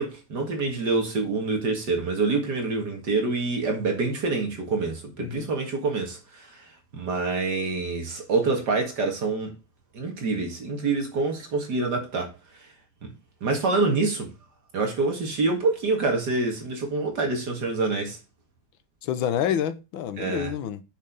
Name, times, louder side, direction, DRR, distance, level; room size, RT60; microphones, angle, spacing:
voice 1, 0.0-6.6 6.9-9.5 9.9-12.3 13.0-13.1 13.4-14.3 14.7-18.2 20.2-20.5, right 3 dB, 55° right, 2.4 m, -26 dB
voice 2, 5.2-5.5 19.0-20.8, left 9 dB, 80° left, 1.6 m, -28 dB
6.6 x 6.0 x 5.3 m
omnidirectional pair, 2.2 m